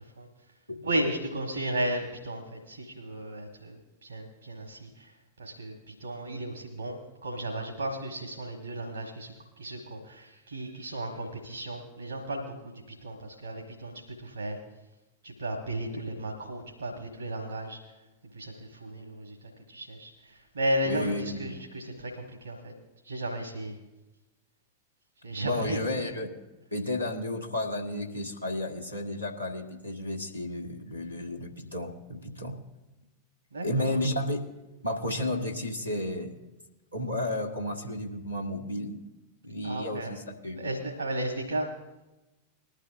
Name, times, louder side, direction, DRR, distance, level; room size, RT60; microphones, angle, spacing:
voice 1, 0.8-3.8 4.0-5.1 5.4-9.3 9.6-12.5 12.9-14.6 15.2-17.8 18.3-19.4 19.7-20.1 20.5-22.7 23.0-23.7 25.2-26.1 33.5-34.0 39.6-40.1 40.5-41.7, right 1 dB, 75° right, 2 dB, 1.3 m, -34 dB
voice 2, 20.8-21.6 25.4-26.3 26.7-32.5 33.6-34.4 34.8-36.3 36.9-39.0 39.4-40.7, left 1 dB, 90° left, -1 dB, 1.5 m, -32 dB
20.5 x 11.5 x 2.5 m, 1.0 s
figure-of-eight pair, 90°, 0 cm